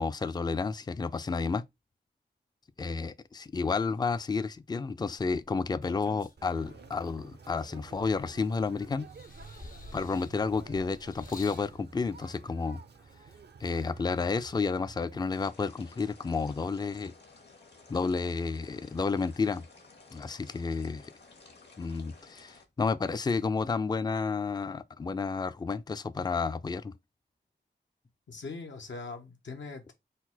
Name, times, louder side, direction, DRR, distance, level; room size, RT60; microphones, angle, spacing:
voice 1, 0.0-1.6 2.8-9.1 9.9-12.8 13.6-17.1 17.9-19.6 20.1-21.1 21.8-26.9, left 4 dB, 20° left, 0.3 m, -31 dB
sound 1, 5.2-7.0 7.6-8.6 9.1-11.7 12.6-12.7, left 3 dB, 50° left, 0.7 m, -50 dB
Conversation, 6.4-15.5, right 5 dB, 65° right, 0.5 m, -51 dB
sound 2, 15.3-22.6, left 3 dB, 70° left, 1.2 m, -55 dB
voice 2, 28.3-29.9, left 4 dB, 90° left, 0.9 m, -41 dB
3.9 x 2.2 x 4.3 m
cardioid pair, 45°, 18 cm